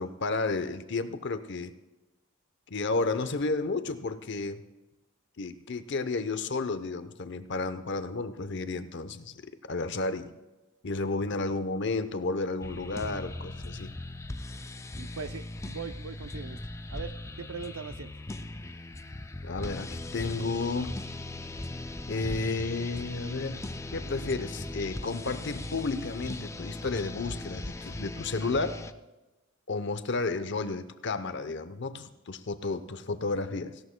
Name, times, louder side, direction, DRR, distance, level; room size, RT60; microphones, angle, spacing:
voice 1, 0.0-1.7 2.7-4.6 5.4-9.4 9.7-10.3 10.8-13.9 19.4-21.0 22.1-23.6 23.9-28.8 29.7-33.8, left 3 dB, 55° left, 11 dB, 0.7 m, -32 dB
sound 1, 12.6-28.9, left 2 dB, 15° left, 0.4 m, -39 dB
voice 2, 15.0-16.6 16.9-18.1, right 5 dB, 80° right, 13 dB, 0.6 m, -40 dB
17.5 x 16.0 x 2.2 m, 1.1 s
head